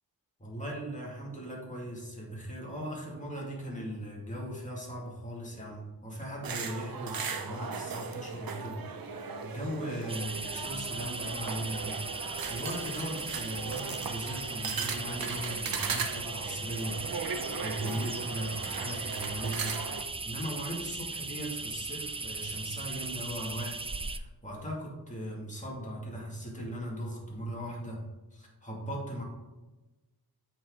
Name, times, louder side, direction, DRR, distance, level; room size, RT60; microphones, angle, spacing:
voice 1, 0.4-8.8 9.1-28.0 28.3-29.2, right 1 dB, 20° left, -3 dB, 2.3 m, -38 dB
sound 1, 6.4-20.0, right 5 dB, 65° right, 0.8 m, -38 dB
sound 2, 10.1-24.2, right 3 dB, 15° right, 0.4 m, -38 dB
8.4 x 4.6 x 3.8 m, 1.1 s
wide cardioid pair, 70°, 38 cm